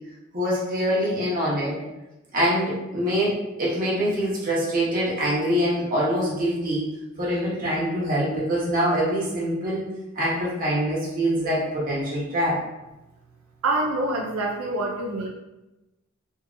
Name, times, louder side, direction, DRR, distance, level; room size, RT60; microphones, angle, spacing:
voice 1, 0.3-1.8 2.3-6.9 7.2-9.8 10.1-12.6, equal, 40° right, -6 dB, 1.1 m, -24 dB
voice 2, 13.6-15.3, right 2 dB, 90° right, 0 dB, 0.4 m, -26 dB
3.6 x 2.6 x 2.5 m, 1.0 s
head